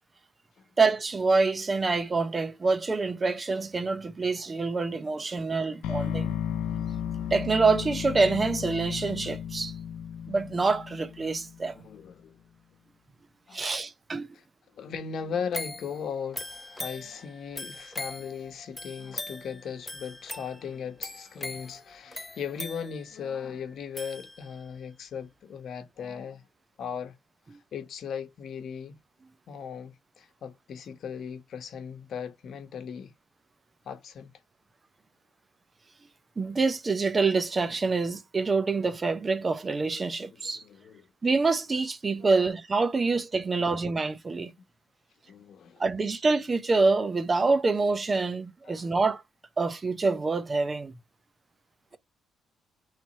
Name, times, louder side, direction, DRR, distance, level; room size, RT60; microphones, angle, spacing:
voice 1, 0.8-6.3 6.8-6.9 7.3-9.7 10.3-11.9 13.5-14.3 36.4-40.6 41.2-44.5 45.8-49.2 49.6-50.9, right 3 dB, 30° right, 0.7 m, -26 dB
sound 1, 5.8-11.9, left 9 dB, 90° left, 0.3 m, -34 dB
voice 2, 11.7-12.4 13.5-13.6 14.7-26.4 26.8-27.1 27.7-28.9 29.5-33.1 33.9-34.3 40.2-41.1 42.2-42.4 43.0-43.1 43.5-43.8 45.3-45.8 48.7-48.9, left 7 dB, 65° left, 0.9 m, -38 dB
sound 2, 15.5-24.8 25.2-25.3, left 1 dB, 10° left, 0.5 m, -41 dB
3.3 x 2.8 x 4.2 m
cardioid pair, 90°, 0 cm